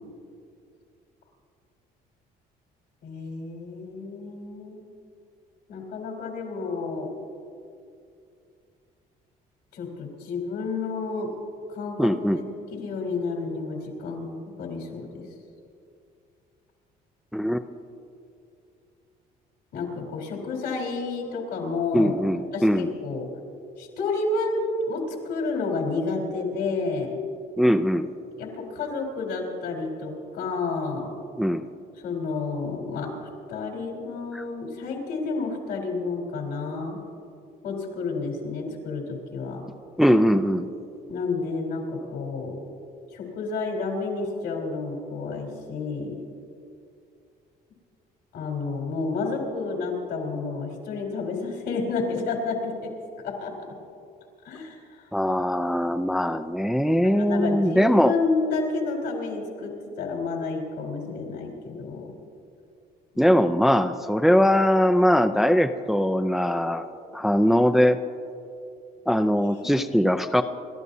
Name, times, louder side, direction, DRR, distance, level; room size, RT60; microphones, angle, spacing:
voice 1, 3.0-4.8 5.7-7.1 9.7-11.3 11.7-12.4 12.7-15.2 19.7-22.1 22.5-23.3 23.8-24.6 24.9-27.2 28.4-31.1 32.0-33.1 33.5-37.0 37.6-39.6 41.1-42.6 43.1-46.2 48.3-52.9 53.2-53.5 54.4-55.0 57.0-62.1 63.1-63.4 69.3-69.4 69.6-69.7, left 4 dB, 85° left, 0 dB, 3.7 m, -30 dB
voice 2, 12.0-12.4 17.3-17.6 21.9-22.9 27.6-28.1 31.4-31.6 34.3-34.4 40.0-40.7 55.1-58.1 63.2-66.9 67.1-68.0 69.1-70.4, equal, ahead, 8 dB, 0.4 m, -21 dB
29.5 x 12.5 x 2.7 m, 2.5 s
cardioid pair, 110°, 17 cm